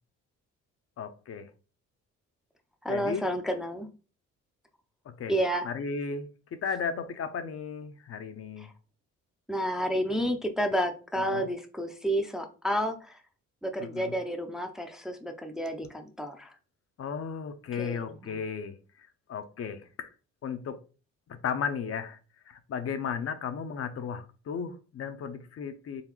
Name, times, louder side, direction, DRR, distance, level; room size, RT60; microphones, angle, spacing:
voice 1, 1.0-1.5 2.9-3.3 5.1-5.3 5.6-8.7 11.3-11.5 13.8-14.1 17.0-20.1 20.4-20.8 21.3-22.2 22.5-26.0, left 6 dB, 50° left, 0.6 m, -35 dB
voice 2, 2.8-3.9 5.3-5.7 8.6-8.7 9.5-13.2 13.6-16.5 17.8-18.4, equal, ahead, 0.5 m, -30 dB
3.9 x 3.1 x 3.0 m
cardioid pair, 90°, 30 cm